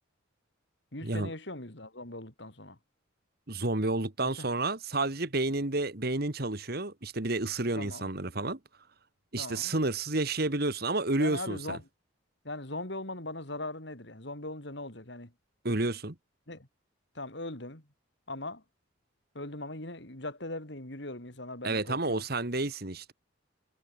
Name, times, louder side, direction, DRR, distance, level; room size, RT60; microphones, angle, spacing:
voice 1, 0.9-2.8 4.2-4.5 7.8-8.1 9.4-9.7 11.2-11.8 12.4-15.3 16.5-16.7 17.1-17.9 18.3-18.6 19.3-22.3, left 2 dB, 55° left, 3.8 m, -40 dB
voice 2, 3.5-8.6 9.3-11.8 15.6-16.2 21.6-23.1, right 2 dB, 50° right, 1.8 m, -30 dB
head